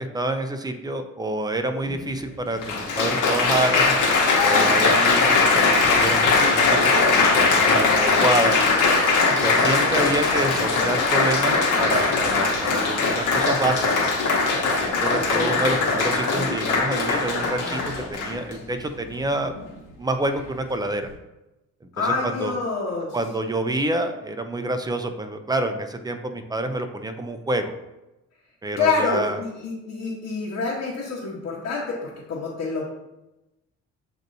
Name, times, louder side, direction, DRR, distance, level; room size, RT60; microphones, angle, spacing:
voice 1, 0.0-4.0 4.4-8.6 9.3-11.5 11.8-13.9 15.0-17.8 18.1-19.6 20.0-21.0 22.0-22.6 23.1-27.7 28.6-29.4, right 1 dB, 15° right, 7 dB, 0.4 m, -27 dB
Applause, 1.9-2.0 2.6-18.5 19.3-19.6, left 3 dB, 85° left, 1.0 m, -20 dB
voice 2, 15.3-15.7 21.9-23.2 28.8-32.9, left 4 dB, 55° left, -5 dB, 1.1 m, -27 dB
7.4 x 2.7 x 2.6 m, 0.98 s
cardioid pair, 90°, 30 cm